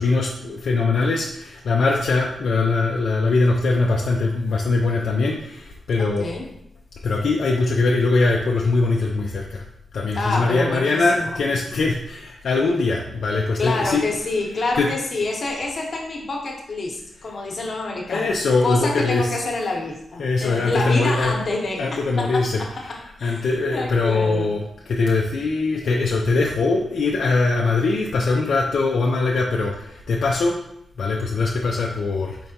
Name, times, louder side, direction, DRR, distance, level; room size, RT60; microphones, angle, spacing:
voice 1, 0.0-6.3 7.0-9.6 9.9-14.0 14.8-14.9 18.1-19.3 20.2-21.3 21.8-22.6 22.9-30.6 31.0-32.5, left 3 dB, 75° left, -1 dB, 0.4 m, -21 dB
voice 2, 6.0-6.5 10.1-11.4 13.6-18.3 18.6-24.5, left 2 dB, 50° left, 0 dB, 0.9 m, -27 dB
4.7 x 3.3 x 2.8 m, 0.77 s
cardioid pair, 100°, 0 cm